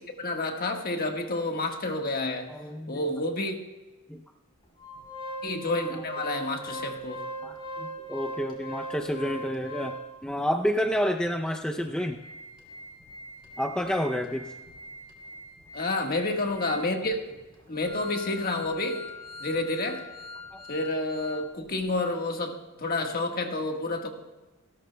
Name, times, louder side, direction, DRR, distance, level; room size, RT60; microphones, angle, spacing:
voice 1, 0.0-2.5 2.9-3.5 5.4-7.2 15.7-17.2 17.7-19.0 19.4-20.0 20.7-24.1, left 2 dB, 45° left, 3 dB, 1.5 m, -29 dB
voice 2, 2.5-3.0 4.1-4.2 7.4-12.2 13.6-14.5 20.5-20.6, equal, 5° left, 2 dB, 0.5 m, -29 dB
Organ, 4.8-10.3 10.8-10.9 11.2-11.3 11.8-21.4 21.7-21.8, equal, 25° left, 3.0 m, -41 dB
29.0 x 13.0 x 2.2 m, 1.2 s
head